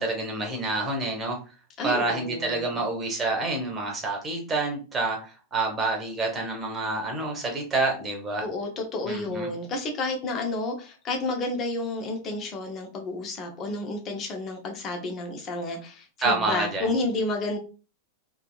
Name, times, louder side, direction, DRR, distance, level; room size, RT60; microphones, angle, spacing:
voice 1, 0.0-1.4 1.8-8.4 9.0-9.5 16.2-16.9, right 3 dB, 20° right, 1 dB, 1.4 m, -28 dB
voice 2, 1.8-2.8 8.4-17.6, left 2 dB, 30° left, 2 dB, 1.0 m, -31 dB
3.5 x 3.3 x 2.5 m, 0.34 s
figure-of-eight pair, 90°, 0 cm